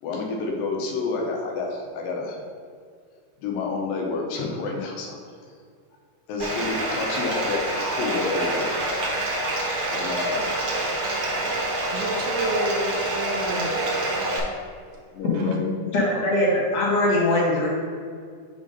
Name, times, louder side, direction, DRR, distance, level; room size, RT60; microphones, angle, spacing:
voice 1, 0.0-2.4 3.4-5.5 6.3-7.6 7.9-8.7 9.9-10.4 15.1-15.7 16.3-16.5, left 3 dB, 90° left, 0 dB, 2.7 m, -29 dB
Bathtub (filling or washing), 6.4-14.4, right 1 dB, 60° right, 1.5 m, -26 dB
voice 2, 11.9-14.5 15.3-15.6, right 2 dB, 80° right, 1 dB, 1.9 m, -31 dB
voice 3, 15.9-17.7, left 1 dB, 55° left, -6 dB, 2.6 m, -21 dB
6.9 x 3.7 x 5.2 m, 2.1 s
omnidirectional pair, 3.9 m